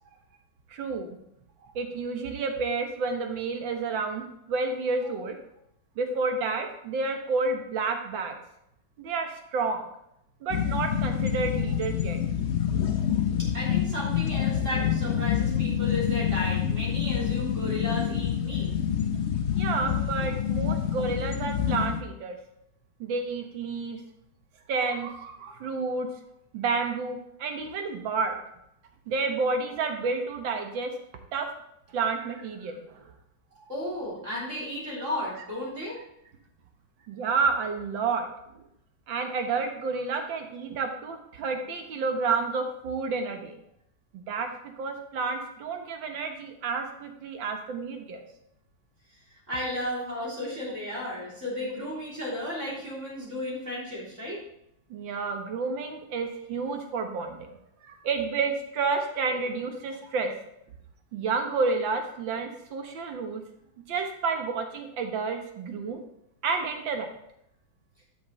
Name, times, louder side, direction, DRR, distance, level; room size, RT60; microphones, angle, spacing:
voice 1, 0.7-1.2 1.6-5.4 6.0-8.4 9.0-9.9 10.4-12.2 19.5-22.4 23.0-24.0 24.7-26.1 26.5-28.4 29.1-30.9 31.3-31.5 31.9-33.1 37.1-38.3 39.1-43.6 44.1-48.2 54.9-57.5 57.8-60.3 61.1-63.4 63.9-66.0 66.4-67.1, right 4 dB, 70° right, 4 dB, 1.8 m, -30 dB
sound 1, 10.5-22.0, left 9 dB, 60° left, 0.7 m, -27 dB
voice 2, 13.4-18.7 20.7-20.8 33.7-36.0 49.3-54.4, left 1 dB, 35° right, -6 dB, 3.6 m, -34 dB
12.5 x 6.4 x 3.2 m, 0.78 s
omnidirectional pair, 2.2 m